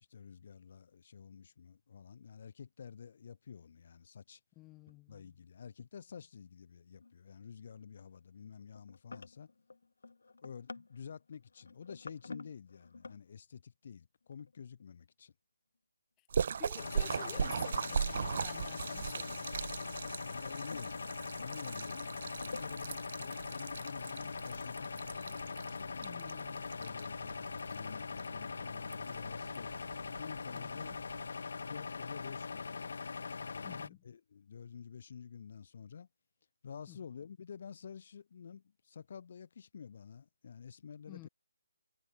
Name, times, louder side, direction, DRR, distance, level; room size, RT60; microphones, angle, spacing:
voice 1, 0.1-4.4 5.1-9.5 10.4-15.3 18.8-18.9 20.2-21.0 21.4-22.1 22.4-26.1 26.8-30.9 31.6-32.7 33.4-36.1 36.6-41.3, left 7 dB, 35° left, 1.6 m, -50 dB
voice 2, 4.6-5.4 16.6-19.4 26.0-26.7 30.5-31.0 33.6-34.0 36.9-37.0 41.1-41.3, left 22 dB, 10° left, 0.7 m, -53 dB
sound 1, 4.9-5.0 7.0-7.5 7.8-8.1 8.6-13.2 14.3-14.8 16.8-16.9 19.2-19.3 20.1-21.5 22.3-23.0, left 3 dB, 75° left, 2.4 m, -51 dB
Splash splatter, 16.3-31.3, right 6 dB, 35° right, 0.5 m, -40 dB
sound 2, 16.8-33.9, left 4 dB, 50° left, 1.3 m, -42 dB
hypercardioid pair, 180°, 0 cm